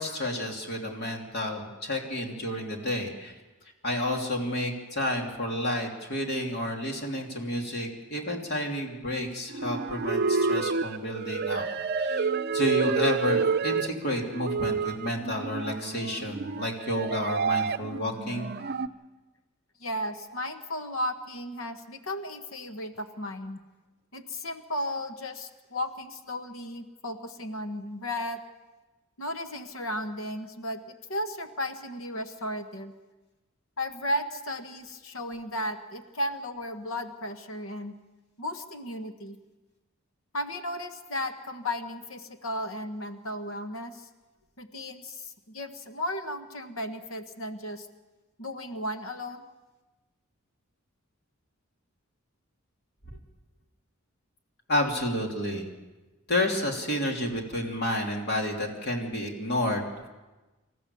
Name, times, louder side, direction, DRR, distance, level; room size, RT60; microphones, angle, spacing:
voice 1, 0.0-3.3 3.8-11.6 12.0-18.5 54.7-55.7 56.3-60.1, left 1 dB, 50° left, 1 dB, 3.1 m, -30 dB
sound 1, 9.5-18.9, right 5 dB, 50° right, 0.6 m, -29 dB
voice 2, 19.8-23.6 24.1-28.4 29.2-32.9 33.8-37.9 38.4-39.4 40.3-44.1 44.6-47.9 48.4-49.4, left 1 dB, 70° left, 7 dB, 1.5 m, -35 dB
27.5 x 14.5 x 7.1 m, 1.2 s
head